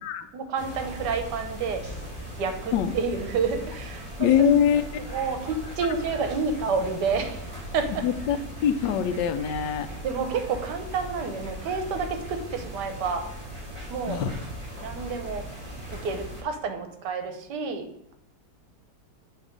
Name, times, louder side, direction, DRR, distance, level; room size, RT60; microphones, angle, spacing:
voice 1, 0.3-1.8 2.4-4.3 5.1-8.0 10.0-13.3 13.9-14.2 14.8-15.4 16.0-18.1, right 5 dB, 80° right, 7 dB, 1.4 m, -29 dB
sound 1, 0.6-16.4, equal, 20° right, 2.2 m, -39 dB
voice 2, 4.2-4.8 8.0-9.9 14.1-14.3, left 8 dB, 90° left, 10 dB, 1.3 m, -23 dB
8.0 x 3.0 x 5.1 m, 0.79 s
omnidirectional pair, 1.8 m